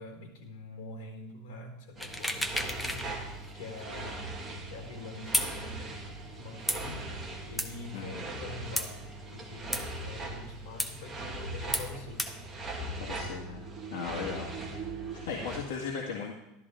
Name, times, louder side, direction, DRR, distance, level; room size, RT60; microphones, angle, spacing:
voice 1, 0.0-4.4 4.7-7.1 7.5-12.2, left 2 dB, 70° left, 2 dB, 4.3 m, -45 dB
sound 1, 1.9-15.6, right 2 dB, 15° right, 2.1 m, -40 dB
sound 2, 2.0-3.1 3.4-3.5 5.3-5.5 6.7-6.8 7.6-7.7 8.8-8.9 9.7-9.8 10.8-10.9 11.7-11.9 12.2-12.3, left 1 dB, 5° left, 0.8 m, -31 dB
voice 2, 7.9-8.3 13.0-13.7 13.9-14.5 15.1-16.3, left 5 dB, 90° left, -2 dB, 1.8 m, -37 dB
13.5 x 12.5 x 3.8 m, 0.94 s
supercardioid pair, 155°, 0 cm